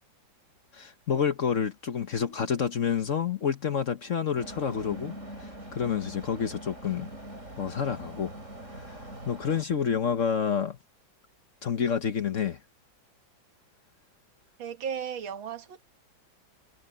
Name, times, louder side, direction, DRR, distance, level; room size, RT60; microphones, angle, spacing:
voice 1, 0.7-5.1 5.4-7.1 7.6-8.3 8.8-8.9 9.3-10.8 11.6-12.6, left 7 dB, 50° left, 1.1 m, -28 dB
sound 1, 4.4-9.6, right 1 dB, 35° right, 6.6 m, -43 dB
voice 2, 14.6-15.8, right 7 dB, 90° right, 2.2 m, -35 dB
omnidirectional pair, 2.1 m